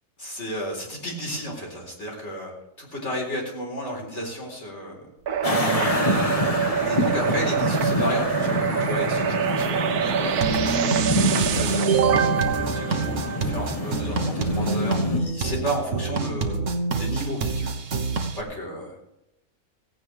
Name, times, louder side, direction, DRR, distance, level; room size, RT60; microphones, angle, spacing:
voice 1, 0.2-2.5 2.8-5.0 5.4-6.0 6.9-12.4 12.7-16.6 17.0-17.7 18.3-18.9, equal, 45° left, 0 dB, 4.5 m, -33 dB
sound 1, 5.3-13.9, right 8 dB, 75° right, 1.3 m, -25 dB
sound 2, 5.4-15.2, left 1 dB, 25° left, 1.4 m, -27 dB
sound 3, 10.4-18.4, right 2 dB, 55° right, 1.5 m, -27 dB
16.5 x 16.0 x 3.4 m, 0.87 s
omnidirectional pair, 1.6 m